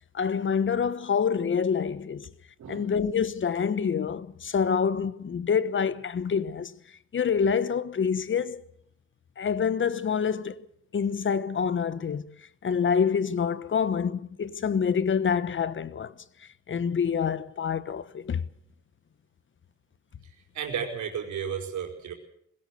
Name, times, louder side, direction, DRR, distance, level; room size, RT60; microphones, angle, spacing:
voice 1, 0.1-2.3 2.7-6.7 7.1-8.6 9.4-10.5 10.9-12.3 12.6-16.1 16.7-18.4, left 6 dB, 40° left, 1.2 m, -26 dB
voice 2, 2.6-3.0 20.5-22.1, right 7 dB, 70° right, 4.9 m, -33 dB
21.0 x 16.5 x 7.9 m
cardioid pair, 90°, 30 cm